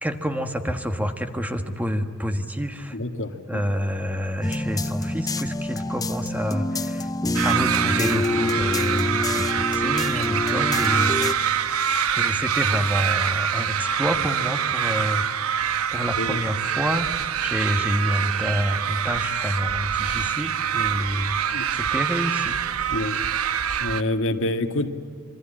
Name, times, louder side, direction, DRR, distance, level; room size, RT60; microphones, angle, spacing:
voice 1, 0.0-3.0 3.5-7.1 7.4-11.8 12.1-15.2 15.9-21.3 21.7-23.1, equal, 5° right, 6 dB, 1.4 m, -28 dB
voice 2, 2.9-3.6 16.2-16.4 21.5-21.6 22.9-23.2 23.8-24.9, left 1 dB, 65° left, 6 dB, 1.9 m, -27 dB
sound 1, 4.4-11.3, left 2 dB, 15° left, 0.7 m, -27 dB
sound 2, 7.3-24.0, right 8 dB, 85° right, 1.0 m, -25 dB
26.5 x 24.0 x 8.9 m, 2.1 s
head